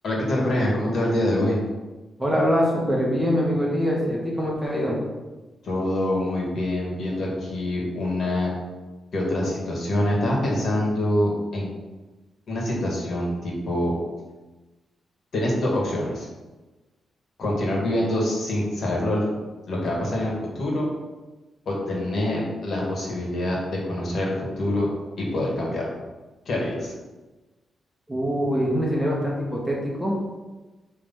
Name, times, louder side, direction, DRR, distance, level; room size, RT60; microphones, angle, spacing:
voice 1, 0.0-1.6 5.6-8.5 9.1-11.7 12.5-13.9 15.3-16.3 17.4-19.2 19.7-20.9 21.7-23.6 23.8-24.9 25.2-25.8 26.5-26.9, left 1 dB, 60° left, -3 dB, 1.9 m, -25 dB
voice 2, 2.2-5.0 28.1-30.2, equal, 10° right, -3 dB, 1.4 m, -24 dB
5.6 x 3.4 x 5.6 m, 1.2 s
cardioid pair, 110°, 0 cm